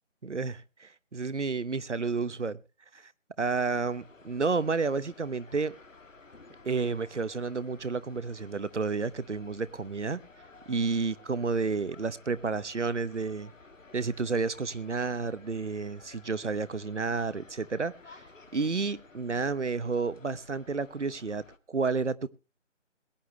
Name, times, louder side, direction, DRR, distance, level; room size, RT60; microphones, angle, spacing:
voice 1, 0.2-2.6 2.9-3.1 3.4-5.7 6.6-10.2 10.7-13.5 13.9-18.2 18.5-22.3, right 4 dB, 65° right, 1.0 m, -31 dB
sound 1, 3.5-21.6, left 3 dB, 80° left, 1.8 m, -55 dB
21.5 x 9.9 x 3.2 m
figure-of-eight pair, 180°, 38 cm